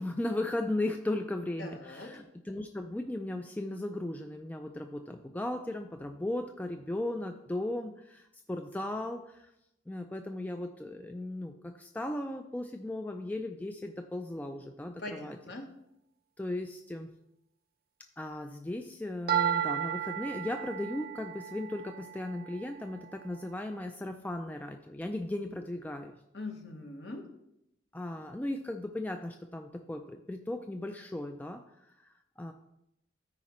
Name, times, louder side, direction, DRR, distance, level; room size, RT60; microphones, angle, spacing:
voice 1, 0.0-9.5 9.9-15.4 16.4-17.1 18.2-26.2 27.9-31.6 32.0-32.5, left 1 dB, 10° left, 5 dB, 0.3 m, -36 dB
voice 2, 1.6-2.2 15.0-15.7 26.3-27.2, left 2 dB, 55° left, 2 dB, 1.2 m, -42 dB
sound 1, 19.3-23.3, right 9 dB, 45° right, 0.6 m, -34 dB
13.5 x 4.9 x 3.1 m, 0.83 s
head